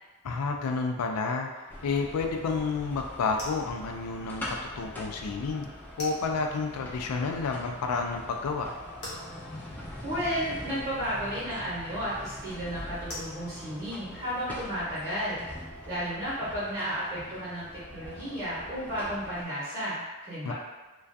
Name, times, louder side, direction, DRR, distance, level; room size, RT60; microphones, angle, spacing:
voice 1, 0.2-5.7 6.0-8.7 20.4-20.5, left 4 dB, 85° left, 3 dB, 0.3 m, -30 dB
sound 1, 1.7-19.4, left 1 dB, 10° left, 0.3 m, -43 dB
sound 2, 2.8-16.3, left 1 dB, 50° left, 0.8 m, -49 dB
voice 2, 10.0-15.6 15.9-20.5, equal, 35° right, -11 dB, 0.8 m, -33 dB
2.2 x 2.2 x 2.5 m, 1.2 s
head